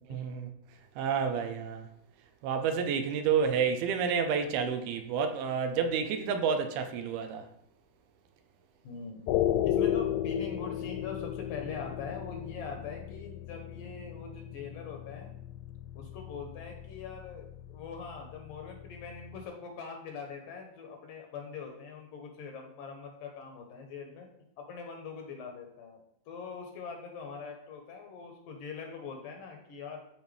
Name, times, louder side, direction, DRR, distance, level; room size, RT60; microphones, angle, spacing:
voice 1, 0.1-0.5 1.0-1.9 2.4-7.4, right 6 dB, 80° right, 2.6 m, -29 dB
voice 2, 8.8-9.2 9.6-15.3 16.0-24.3 24.6-30.0, left 5 dB, 70° left, 2.4 m, -42 dB
sound 1, 9.3-19.5, left 11 dB, 85° left, 2.0 m, -35 dB
13.0 x 4.5 x 3.4 m
omnidirectional pair, 4.5 m